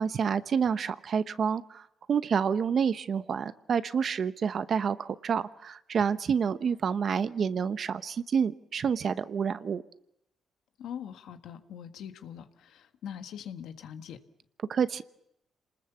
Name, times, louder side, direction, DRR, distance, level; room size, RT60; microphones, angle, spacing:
voice 1, 0.0-1.8 2.1-9.8 14.7-15.0, right 6 dB, 50° right, 13 dB, 0.9 m, -28 dB
voice 2, 10.8-14.2, left 9 dB, 80° left, 7 dB, 1.6 m, -42 dB
27.5 x 20.0 x 7.1 m, 0.80 s
cardioid pair, 90°, 0 cm